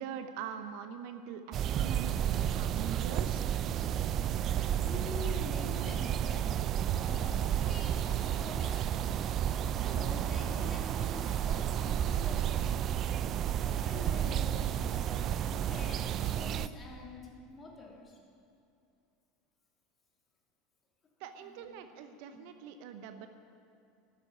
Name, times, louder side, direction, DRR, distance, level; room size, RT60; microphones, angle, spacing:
voice 1, 0.0-3.4 21.2-23.3, right 8 dB, 60° right, 8 dB, 0.8 m, -43 dB
sound 1, 1.5-16.7, right 10 dB, 45° right, 0.4 m, -31 dB
voice 2, 4.8-6.5 6.9-9.1 9.7-12.5 13.6-18.2 21.4-21.6 22.3-22.4, left 3 dB, 25° left, -1 dB, 2.9 m, -46 dB
12.5 x 8.5 x 8.8 m, 2.5 s
hypercardioid pair, 80°, 0 cm